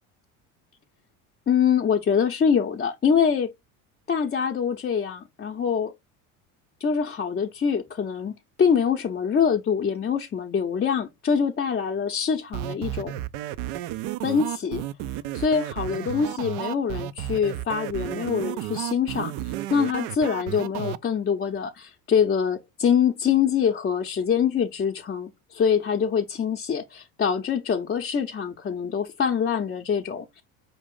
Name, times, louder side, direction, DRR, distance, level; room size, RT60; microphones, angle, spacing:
voice 1, 1.5-3.5 4.1-5.9 6.8-13.2 14.2-14.8 15.3-30.4, left 7 dB, 25° left, 0.7 m, -24 dB
sound 1, 12.5-21.0, right 14 dB, 55° right, 0.5 m, -32 dB
5.2 x 2.4 x 3.7 m
hypercardioid pair, 75°, 43 cm